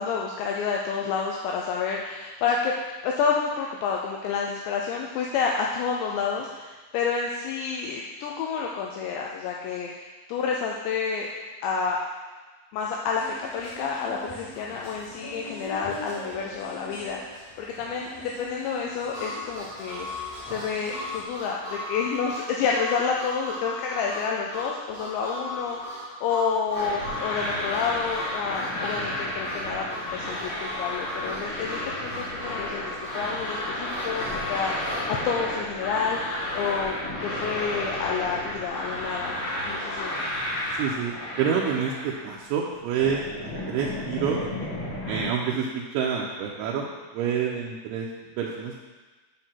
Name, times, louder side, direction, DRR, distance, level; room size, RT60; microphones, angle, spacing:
voice 1, 0.0-2.8 3.0-11.3 11.6-12.0 12.7-29.9 30.1-36.9 37.2-40.1, left 6 dB, 85° left, -1 dB, 2.6 m, -29 dB
sound 1, 13.1-21.2, left 1 dB, 40° left, 2.8 m, -42 dB
Harmonica, 19.1-35.1, left 2 dB, 15° right, 1.2 m, -37 dB
sound 2, 26.7-42.5 42.7-45.3, left 1 dB, 60° left, 4.1 m, -32 dB
voice 2, 40.8-44.4 45.1-48.8, right 7 dB, 80° right, -3 dB, 2.9 m, -28 dB
9.2 x 5.8 x 4.4 m, 1.3 s
omnidirectional pair, 5.7 m